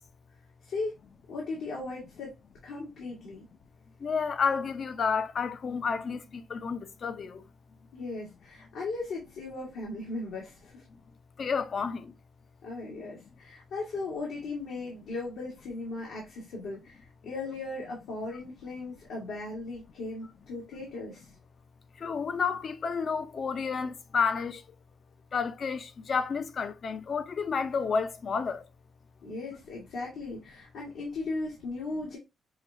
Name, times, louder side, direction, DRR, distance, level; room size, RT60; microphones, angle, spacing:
voice 1, 0.7-1.0 1.3-2.3 2.6-3.5 7.9-10.8 12.6-21.3 29.2-32.2, left 3 dB, 85° left, 1.6 m, -37 dB
voice 2, 4.0-7.4 11.4-12.1 22.0-24.6 25.3-28.6, left 5 dB, 55° left, 0.6 m, -30 dB
5.8 x 2.3 x 2.6 m
cardioid pair, 80°, 0 cm